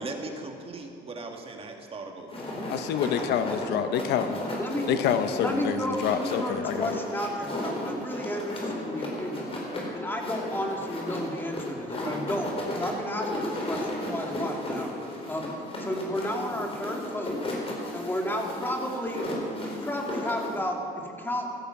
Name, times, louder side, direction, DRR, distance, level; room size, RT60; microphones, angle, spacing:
voice 1, 0.0-2.3 2.8-3.1 12.0-12.2, right 3 dB, 35° right, 3 dB, 2.0 m, -38 dB
sound 1, 2.3-20.6, left 1 dB, 35° left, 4.2 m, -35 dB
voice 2, 2.7-4.4 4.9-6.9, left 8 dB, 80° left, 10 dB, 0.9 m, -27 dB
voice 3, 5.3-9.6 9.9-14.9 15.3-15.5 15.8-17.4 17.9-19.3 19.6-21.5, left 1 dB, 10° left, 1 dB, 2.6 m, -32 dB
16.0 x 14.0 x 6.0 m, 2.5 s
cardioid pair, 110°, 17 cm